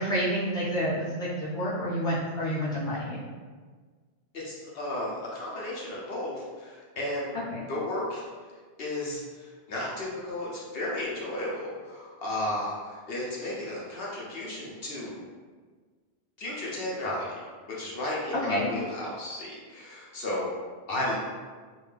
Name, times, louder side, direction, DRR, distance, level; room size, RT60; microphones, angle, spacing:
voice 1, 0.0-3.2 7.3-7.7 18.5-18.7, equal, 5° left, -9 dB, 0.6 m, -29 dB
voice 2, 4.3-7.3 7.7-8.2 8.8-15.2 16.4-17.3 17.8-20.5 20.9-21.2, left 1 dB, 60° left, -5 dB, 0.9 m, -34 dB
3.6 x 2.3 x 3.2 m, 1.5 s
omnidirectional pair, 1.2 m